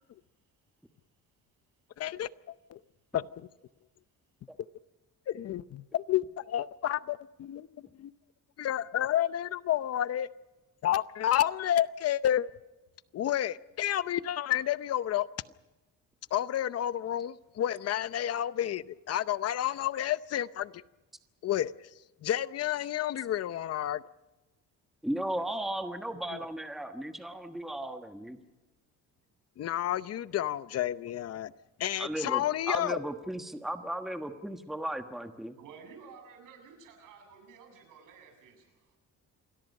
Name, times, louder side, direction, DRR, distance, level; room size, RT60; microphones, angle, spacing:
voice 1, 2.0-2.3 2.7-2.8 3.1-3.5 5.3-7.7 8.0-8.1 8.6-10.3 10.8-12.5 13.1-15.3 16.3-20.8 21.4-21.7 22.2-24.0 26.3-26.4 29.6-31.5 31.8-33.1, left 11 dB, 50° left, 15 dB, 0.7 m, -30 dB
voice 2, 25.0-28.4 32.0-35.6, right 1 dB, ahead, 6 dB, 1.3 m, -35 dB
voice 3, 35.6-39.0, right 5 dB, 90° right, 5 dB, 7.4 m, -52 dB
27.5 x 21.5 x 5.4 m, 1.1 s
cardioid pair, 145°, 31 cm